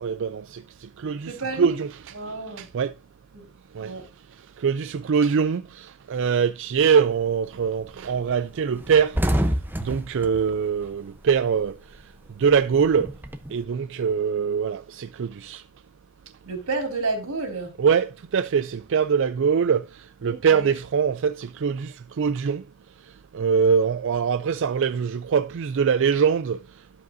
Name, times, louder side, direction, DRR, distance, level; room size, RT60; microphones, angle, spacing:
voice 1, 0.0-2.2 2.6-2.9 3.7-3.9 4.6-9.2 9.8-11.7 12.4-13.1 13.5-15.6 17.8-19.9 20.2-22.6 23.3-26.6, right 6 dB, 60° right, 0.4 m, -23 dB
voice 2, 1.3-1.8 2.1-2.6 3.3-3.5 3.8-4.1 16.5-17.7 20.2-20.7, right 3 dB, 90° right, 3.8 m, -30 dB
sound 1, 7.0-7.4 7.8-7.9 8.2-8.3 8.6-11.6 11.9-13.6, equal, 10° right, 0.8 m, -28 dB
12.0 x 7.6 x 2.6 m
head